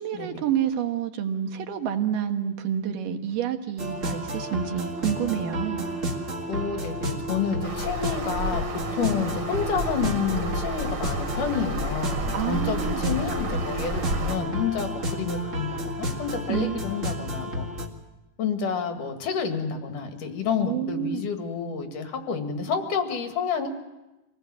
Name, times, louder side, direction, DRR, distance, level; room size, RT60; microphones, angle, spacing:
voice 1, 0.0-5.9 12.3-13.0 16.5-16.8 20.7-21.2, right 9 dB, 75° right, 6 dB, 2.9 m, -28 dB
sound 1, 3.8-17.9, equal, 30° right, 1.9 m, -31 dB
voice 2, 6.5-8.6 9.0-17.7 18.4-23.7, left 6 dB, 70° left, 5 dB, 3.3 m, -29 dB
sound 2, 7.6-14.4, right 1 dB, 50° right, 3.9 m, -32 dB
26.0 x 18.0 x 7.6 m, 1.0 s
omnidirectional pair, 3.8 m